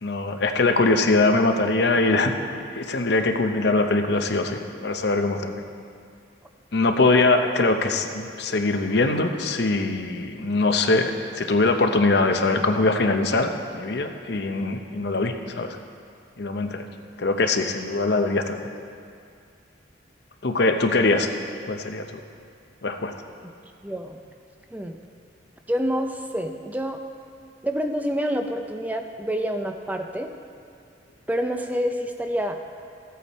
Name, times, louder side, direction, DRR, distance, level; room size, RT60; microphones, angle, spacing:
voice 1, 0.0-5.6 6.7-15.8 16.4-16.8 17.2-18.6 20.4-21.3 21.7-22.0 22.8-23.1, left 3 dB, 60° left, 5 dB, 0.7 m, -22 dB
voice 2, 23.8-24.2 24.7-25.0 25.7-27.0 27.6-30.3 31.3-32.6, equal, 10° right, 4 dB, 0.5 m, -27 dB
15.0 x 8.4 x 4.2 m, 2.3 s
head